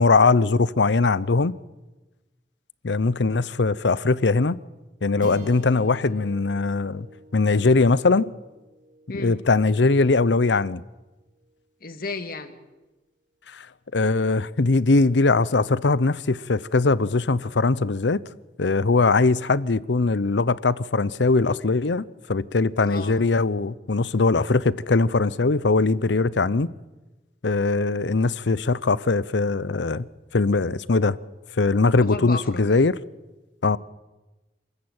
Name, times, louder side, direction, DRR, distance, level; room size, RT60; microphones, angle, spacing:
voice 1, 0.0-1.6 2.8-4.6 5.0-7.1 7.3-8.3 9.1-10.8 13.5-13.7 13.9-18.2 18.6-26.7 27.4-30.0 30.3-31.2 31.6-33.0 33.6-33.8, left 3 dB, 85° left, 0.7 m, -21 dB
sound 1, 5.2-9.7, left 1 dB, 45° right, 2.5 m, -44 dB
voice 2, 11.8-12.6 22.9-23.2 32.1-32.6, left 3 dB, 55° left, 2.0 m, -33 dB
27.5 x 14.5 x 8.8 m
head